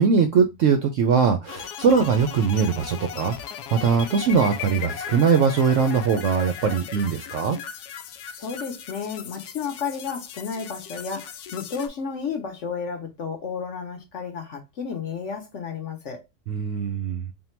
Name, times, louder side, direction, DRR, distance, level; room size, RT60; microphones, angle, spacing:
voice 1, 0.0-7.6 16.5-17.2, right 6 dB, 70° right, 0.7 m, -21 dB
sound 1, 1.5-11.9, left 8 dB, 80° left, 1.1 m, -37 dB
voice 2, 8.3-16.2, left 6 dB, 55° left, 1.0 m, -32 dB
3.6 x 2.2 x 4.3 m
omnidirectional pair, 1.7 m